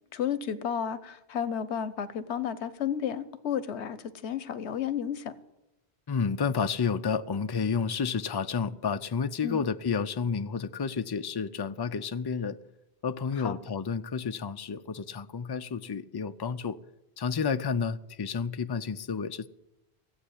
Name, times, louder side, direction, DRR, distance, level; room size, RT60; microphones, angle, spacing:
voice 1, 0.1-5.3 9.4-9.6 13.4-13.6, left 8 dB, 85° left, 1.1 m, -32 dB
voice 2, 6.1-12.6 13.0-16.8 17.2-19.5, left 5 dB, 35° left, 0.4 m, -30 dB
16.5 x 8.0 x 9.9 m
omnidirectional pair, 1.1 m